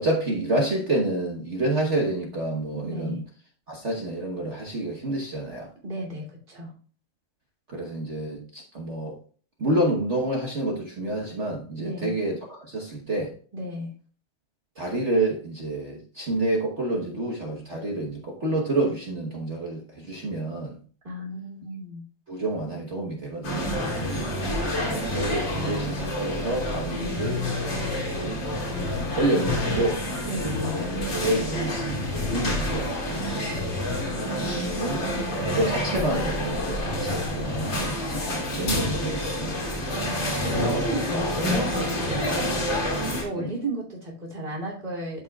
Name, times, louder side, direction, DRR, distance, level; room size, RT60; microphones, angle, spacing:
voice 1, 0.0-3.2 3.7-5.7 7.7-9.2 9.6-13.3 14.8-20.8 22.3-24.3 24.9-27.8 28.0-28.4 29.2-30.0 30.7-33.8 34.4-35.1 35.4-39.6 43.3-43.5, right 1 dB, 40° right, 1.3 m, -29 dB
voice 2, 2.8-3.2 5.8-6.7 11.7-12.1 13.5-13.9 21.0-22.0 26.9-27.2 30.2-30.5 40.0-45.2, right 1 dB, 25° right, 3.2 m, -34 dB
sound 1, 23.4-43.2, left 1 dB, 70° left, 3.3 m, -28 dB
12.5 x 5.5 x 2.3 m
omnidirectional pair, 2.1 m